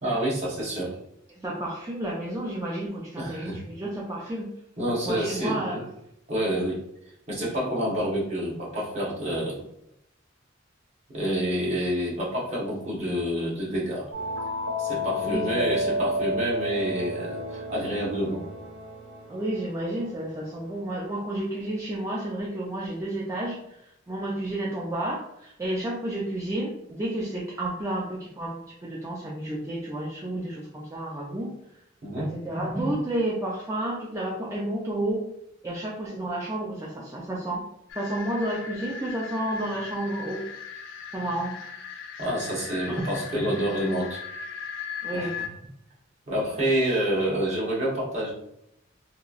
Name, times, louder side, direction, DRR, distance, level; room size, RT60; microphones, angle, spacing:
voice 1, 0.0-0.9 3.2-3.6 4.8-5.8 6.3-6.8 7.3-9.7 11.1-14.1 14.8-18.4 32.0-32.3 42.2-44.2 45.1-45.5 46.3-48.3, equal, 35° right, -6 dB, 1.0 m, -28 dB
voice 2, 1.4-4.5 5.0-5.9 15.2-15.9 19.3-31.5 32.2-35.3 35.6-37.7 38.0-40.5 41.1-41.6 42.9-43.5 45.0-45.3, right 1 dB, 15° right, -4 dB, 0.3 m, -31 dB
sound 1, 14.1-20.6, left 1 dB, 75° right, 1.0 m, -31 dB
sound 2, 37.9-45.5, left 6 dB, 65° left, 0.3 m, -38 dB
2.9 x 2.3 x 2.4 m, 0.77 s
head